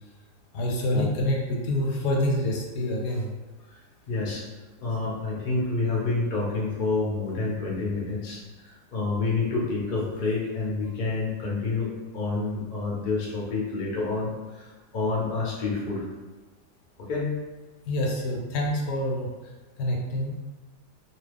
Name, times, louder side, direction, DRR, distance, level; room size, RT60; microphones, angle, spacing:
voice 1, 0.5-3.3 17.9-19.3 19.8-20.3, left 1 dB, 80° left, -1 dB, 1.2 m, -26 dB
voice 2, 4.1-4.4 4.8-14.3 14.6-16.0 17.1-17.3, left 3 dB, 45° left, -5 dB, 0.7 m, -28 dB
3.0 x 2.3 x 3.3 m, 1.2 s
omnidirectional pair, 1.8 m